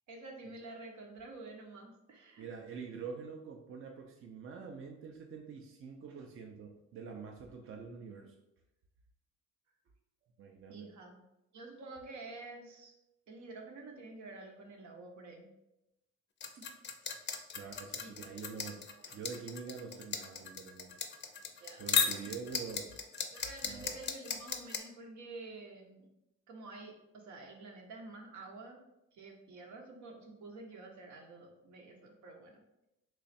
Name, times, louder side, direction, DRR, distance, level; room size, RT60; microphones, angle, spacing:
voice 1, 0.1-2.5 10.7-11.2 11.5-12.9 13.3-15.5 16.6-16.7 18.0-18.1 19.0-19.1 21.6-22.2 23.3-26.1 26.5-28.8 29.1-32.6, right 3 dB, 70° right, 2 dB, 0.8 m, -49 dB
voice 2, 2.4-8.3 10.4-10.9 17.5-20.9 21.8-22.9 23.6-24.0, right 6 dB, 45° right, 1 dB, 0.5 m, -46 dB
sound 1, 16.4-24.8, left 6 dB, 35° left, 0.5 m, -35 dB
3.1 x 2.4 x 4.1 m, 0.90 s
cardioid pair, 90°, 30 cm